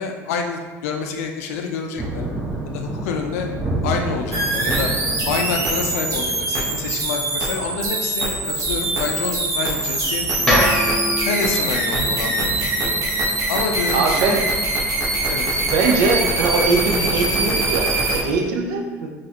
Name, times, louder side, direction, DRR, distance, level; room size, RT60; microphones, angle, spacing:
voice 1, 0.0-2.2 2.7-3.5 3.8-4.9 5.3-10.6 11.2-13.0 13.5-14.4 15.3-15.6 18.4-18.5, left 5 dB, 85° left, 3 dB, 0.4 m, -27 dB
Thunder, 2.0-15.2, right 2 dB, 10° right, 0.8 m, -32 dB
sound 1, 4.3-18.2, right 2 dB, 50° right, 0.9 m, -23 dB
sound 2, 10.5-14.6, equal, 5° left, 1.1 m, -25 dB
voice 2, 13.9-14.4 15.6-19.1, right 4 dB, 75° right, 1 dB, 0.5 m, -21 dB
4.0 x 2.4 x 2.8 m, 1.4 s
supercardioid pair, 80°, 8 cm